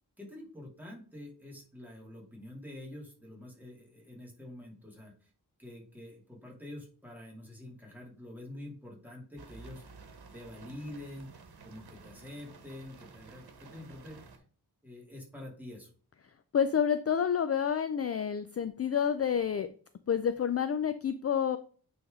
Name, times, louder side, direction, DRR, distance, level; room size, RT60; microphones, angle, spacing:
voice 1, 0.2-5.3 5.6-9.8 10.3-11.3 11.6-14.2 14.8-15.9, left 1 dB, 5° right, -2 dB, 2.4 m, -47 dB
sound 1, 9.4-14.4, right 4 dB, 75° right, 1.2 m, -52 dB
voice 2, 16.5-19.7 20.1-21.6, left 8 dB, 40° left, 10 dB, 0.4 m, -29 dB
8.9 x 3.5 x 3.6 m, 0.43 s
wide cardioid pair, 110°, 38 cm